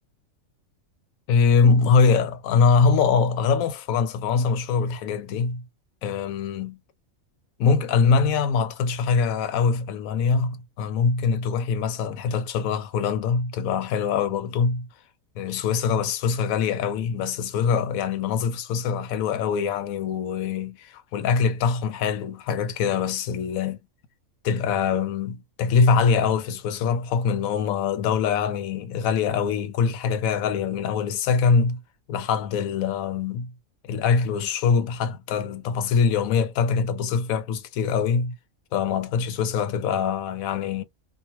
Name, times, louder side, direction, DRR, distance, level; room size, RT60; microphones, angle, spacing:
voice 1, 1.3-5.6 6.0-6.8 7.6-14.9 15.4-23.8 24.4-31.8 32.1-33.5 33.8-38.4 38.7-40.8, left 5 dB, 80° left, 1.0 m, -23 dB
2.3 x 2.0 x 2.9 m
omnidirectional pair, 1.5 m